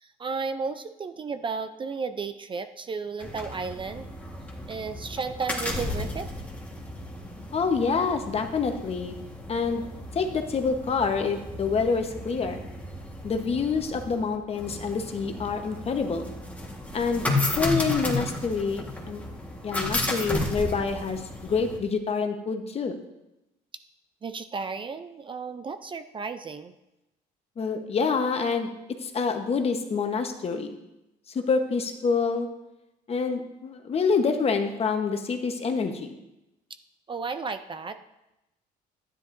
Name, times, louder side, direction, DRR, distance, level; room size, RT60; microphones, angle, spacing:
voice 1, 0.0-4.1 4.7-6.3 24.2-26.7 37.1-38.0, right 5 dB, 30° right, 9 dB, 0.5 m, -33 dB
sound 1, 3.2-21.8, left 2 dB, 10° left, 1.5 m, -34 dB
voice 2, 7.5-9.1 9.5-9.8 10.1-12.6 13.2-16.3 16.9-17.2 17.6-19.2 19.6-23.0 27.6-30.7 31.3-32.5 33.1-36.2, left 5 dB, 35° left, 6 dB, 1.1 m, -27 dB
12.5 x 10.0 x 2.6 m, 0.93 s
cardioid pair, 110°, 17 cm